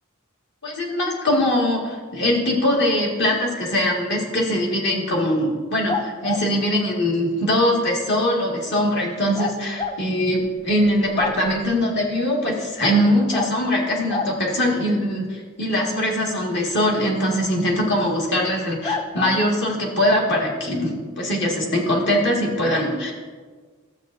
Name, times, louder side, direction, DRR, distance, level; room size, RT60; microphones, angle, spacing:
voice 1, 0.6-23.1, left 1 dB, 55° left, -2 dB, 1.9 m, -22 dB
sound 1, 5.9-6.5 9.4-10.0 10.5-10.6 10.8-11.7 13.3-13.5 14.1-14.4 17.7-17.8 18.8-19.4, left 4 dB, 20° left, 0.4 m, -27 dB
12.5 x 7.9 x 2.6 m, 1.5 s
head